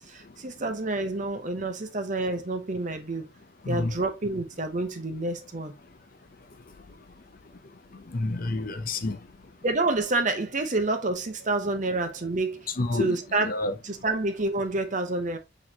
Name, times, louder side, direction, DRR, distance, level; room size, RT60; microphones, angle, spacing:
voice 1, 0.1-3.3 3.7-5.7 9.6-13.5 13.8-15.4, right 2 dB, 40° right, 0.8 m, -28 dB
voice 2, 8.1-9.2 12.8-13.7, left 2 dB, 50° left, 0.6 m, -29 dB
6.2 x 3.1 x 2.8 m
head